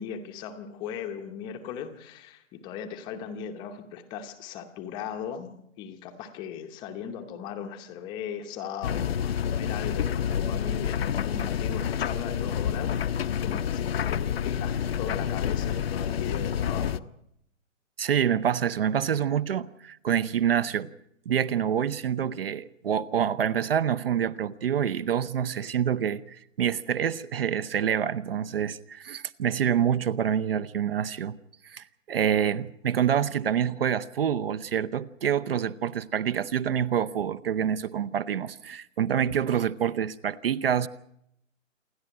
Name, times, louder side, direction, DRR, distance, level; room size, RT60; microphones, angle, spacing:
voice 1, 0.0-17.1, left 7 dB, 10° left, 0.8 m, -38 dB
sound 1, 8.8-17.0, left 8 dB, 50° left, 0.7 m, -28 dB
voice 2, 18.0-20.9 21.3-31.3 31.6-40.9, right 9 dB, 45° right, 0.8 m, -27 dB
28.0 x 11.0 x 8.9 m
hypercardioid pair, 150°, 40 cm